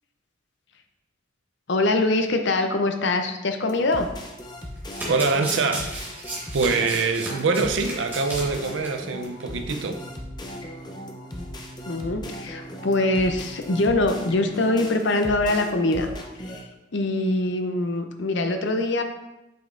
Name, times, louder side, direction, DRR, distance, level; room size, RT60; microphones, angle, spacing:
voice 1, 1.7-4.1 11.9-16.1 16.5-16.6 16.9-19.0, left 2 dB, 65° left, 6 dB, 0.6 m, -23 dB
sound 1, 3.7-16.6, left 1 dB, 20° left, 0.6 m, -38 dB
Domestic sounds home sounds, 4.6-8.9 9.2-9.4 9.7-9.8, right 1 dB, 10° right, 1.6 m, -34 dB
voice 2, 5.1-6.2 6.5-10.0, right 4 dB, 70° right, 6 dB, 0.5 m, -24 dB
sound 2, 9.2-14.7, right 1 dB, 30° right, 0.6 m, -45 dB
7.8 x 5.3 x 2.5 m, 0.97 s
head